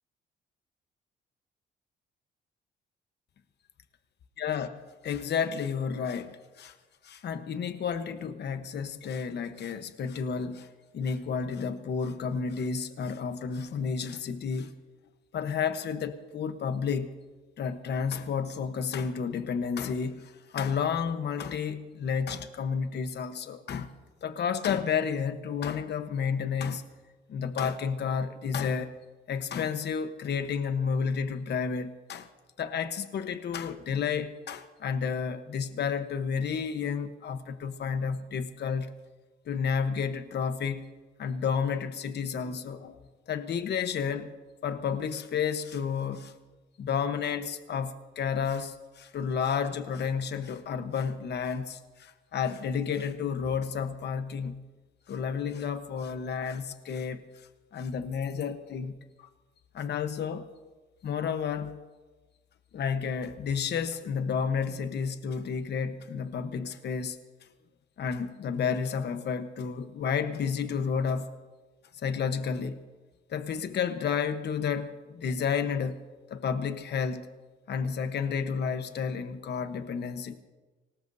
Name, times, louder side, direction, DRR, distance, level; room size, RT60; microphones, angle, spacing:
voice 1, 4.4-4.7 5.0-6.7 7.0-10.7 10.9-14.7 15.3-17.1 17.6-23.9 24.2-26.8 27.3-28.9 29.3-32.3 32.6-38.9 39.4-40.8 41.2-43.0 43.3-44.3 44.6-46.3 46.8-54.6 55.1-57.2 57.7-59.3 59.7-60.5 61.0-61.8 62.7-67.2 68.0-71.3 71.9-72.8 73.3-76.0 76.3-77.3 77.7-80.4, left 6 dB, 60° left, 1.1 m, -31 dB
24.5 x 18.5 x 2.7 m
cardioid pair, 90°, 20 cm